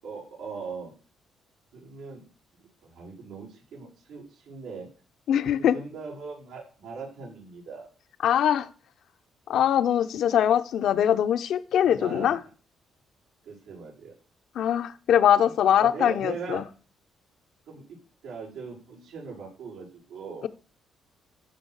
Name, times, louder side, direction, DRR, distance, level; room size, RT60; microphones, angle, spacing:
voice 1, 0.0-0.9 1.7-2.2 2.6-4.9 5.5-7.9 11.8-12.4 13.4-14.1 15.4-16.6 17.7-18.0 18.2-20.5, right 5 dB, 85° right, 6.8 m, -40 dB
voice 2, 5.3-5.8 8.2-8.7 9.5-12.4 14.5-16.6, left 9 dB, 75° left, 1.0 m, -22 dB
14.5 x 6.4 x 6.5 m
cardioid pair, 90°, 0 cm